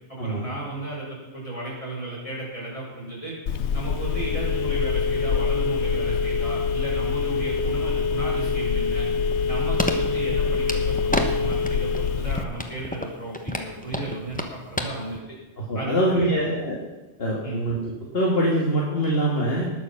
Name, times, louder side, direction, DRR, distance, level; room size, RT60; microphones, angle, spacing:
voice 1, 0.1-3.3 3.7-9.1 9.5-15.2 15.7-16.5 17.4-17.6, right 2 dB, 30° left, -6 dB, 6.1 m, -34 dB
Telephone, 3.5-12.4, left 5 dB, 80° left, 1.0 m, -25 dB
sound 1, 8.9-11.2 11.5-12.1 12.4-14.8 15.2-15.3, left 1 dB, 10° left, 1.0 m, -29 dB
voice 2, 15.6-16.8 17.2-19.7, right 1 dB, 60° left, -4 dB, 2.2 m, -24 dB
19.5 x 6.9 x 5.9 m, 1.1 s
omnidirectional pair, 1.1 m